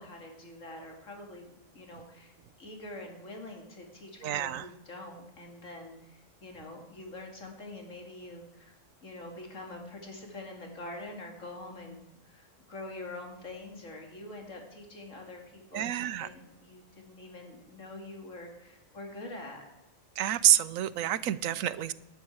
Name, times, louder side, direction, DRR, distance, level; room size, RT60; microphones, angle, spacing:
voice 1, 0.0-2.3 2.6-12.0 12.2-19.6, left 2 dB, 70° left, 2 dB, 3.0 m, -45 dB
voice 2, 4.2-4.7 15.7-16.3 20.2-21.9, right 12 dB, 85° right, 17 dB, 1.0 m, -27 dB
11.5 x 7.8 x 8.6 m, 0.95 s
omnidirectional pair, 1.4 m